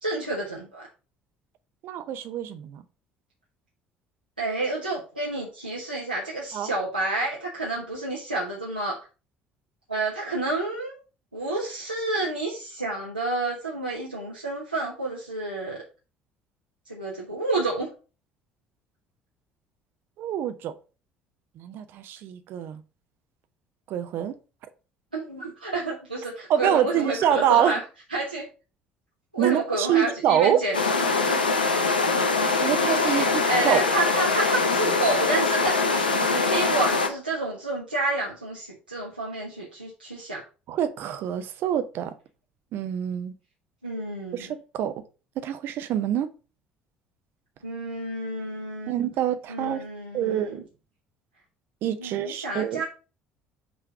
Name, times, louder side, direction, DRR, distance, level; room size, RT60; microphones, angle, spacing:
voice 1, 0.0-0.9 4.4-9.0 9.9-11.0 11.3-15.8 16.9-17.9 25.1-27.8 28.1-28.5 29.3-31.2 32.5-40.4 43.8-44.5 47.6-48.9 49.5-50.6 52.0-52.8, right 2 dB, 90° right, 1.0 m, -30 dB
voice 2, 1.8-2.8 6.5-6.7 20.2-20.7 21.6-22.8 23.9-24.3 26.5-27.7 29.4-30.6 32.6-33.8 40.7-42.1 42.7-43.3 44.3-44.9 45.4-46.3 48.9-49.8 50.1-50.6 51.8-52.8, right 10 dB, 50° right, 0.7 m, -26 dB
sound 1, 30.7-37.1, left 3 dB, 80° left, 0.7 m, -23 dB
6.1 x 3.3 x 4.7 m
figure-of-eight pair, 55°, 5 cm